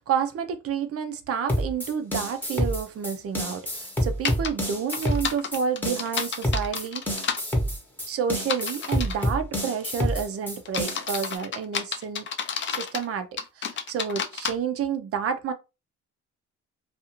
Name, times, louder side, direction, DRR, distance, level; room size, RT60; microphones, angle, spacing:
voice 1, 0.0-7.3 8.1-12.3 12.7-13.3 13.6-15.5, right 7 dB, 50° right, 0.5 m, -29 dB
sound 1, 1.5-11.4, equal, 5° left, 0.9 m, -28 dB
sound 2, 4.2-4.5 4.9-7.4 8.4-9.2 9.8-10.1 10.6-13.1 13.4-14.5, left 7 dB, 40° left, 0.4 m, -30 dB
2.4 x 2.4 x 2.8 m
cardioid pair, 90°, 30 cm